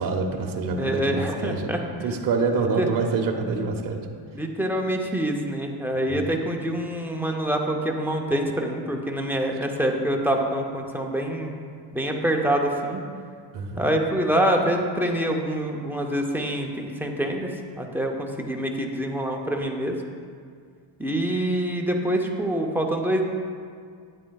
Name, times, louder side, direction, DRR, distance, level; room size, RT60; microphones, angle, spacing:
voice 1, 0.0-4.1 6.1-6.3 13.5-13.9, right 4 dB, 40° right, 2 dB, 0.8 m, -26 dB
voice 2, 0.7-1.8 2.8-2.9 4.3-11.5 11.9-13.0 13.8-17.5 17.8-20.0 21.0-23.2, right 1 dB, 5° right, 0 dB, 0.4 m, -25 dB
9.5 x 9.4 x 2.3 m, 2.1 s
cardioid pair, 135°, 50 cm